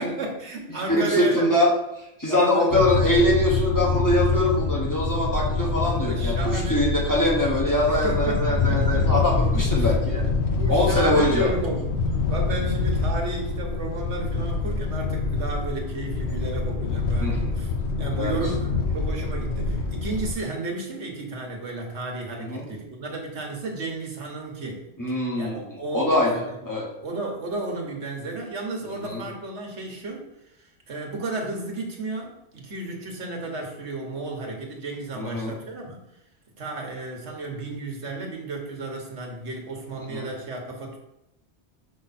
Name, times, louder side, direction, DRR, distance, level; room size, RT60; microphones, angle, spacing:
voice 1, 0.0-1.5 2.3-2.7 5.9-6.9 7.9-9.9 10.5-11.9 12.3-17.7 18.0-24.9 25.4-26.6 27.0-36.0 36.6-41.0, right 2 dB, 90° right, 1 dB, 1.6 m, -33 dB
voice 2, 0.9-1.7 2.0-10.3 10.7-11.5 17.2-17.5 18.1-18.4 22.4-22.7 25.0-25.6 25.9-26.9 28.9-29.2 35.2-35.5 40.1-40.3, left 1 dB, 20° left, -4 dB, 1.2 m, -23 dB
sound 1, 2.7-20.3, left 4 dB, 75° left, 1.0 m, -25 dB
5.8 x 4.9 x 4.2 m, 0.86 s
omnidirectional pair, 1.1 m